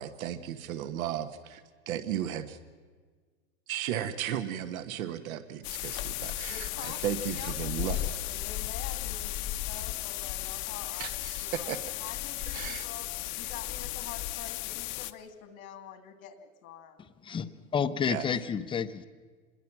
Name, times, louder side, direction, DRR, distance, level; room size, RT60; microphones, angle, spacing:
voice 1, 0.0-1.6 1.9-2.6 3.7-8.0 11.0-11.8 12.5-12.9 18.1-18.3, right 10 dB, 75° right, 11 dB, 1.4 m, -35 dB
sound 1, 5.6-15.1, left 15 dB, 45° left, 0.9 m, -35 dB
voice 2, 6.5-13.1 13.4-17.1, left 8 dB, 80° left, 9 dB, 2.5 m, -46 dB
voice 3, 17.2-19.1, left 7 dB, 10° left, 12 dB, 0.6 m, -30 dB
25.5 x 21.0 x 6.0 m, 1.5 s
supercardioid pair, 135°, 41 cm